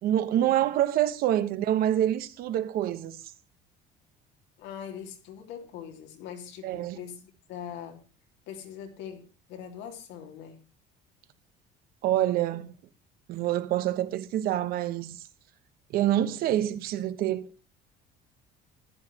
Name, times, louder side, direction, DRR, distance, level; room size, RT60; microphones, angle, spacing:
voice 1, 0.0-3.2 6.6-7.0 12.0-12.7 13.3-15.2 15.9-17.5, right 12 dB, 55° right, 1.2 m, -26 dB
voice 2, 4.6-8.0 8.5-10.6, left 8 dB, 75° left, 3.0 m, -42 dB
15.0 x 11.5 x 2.9 m
cardioid pair, 180°, 19 cm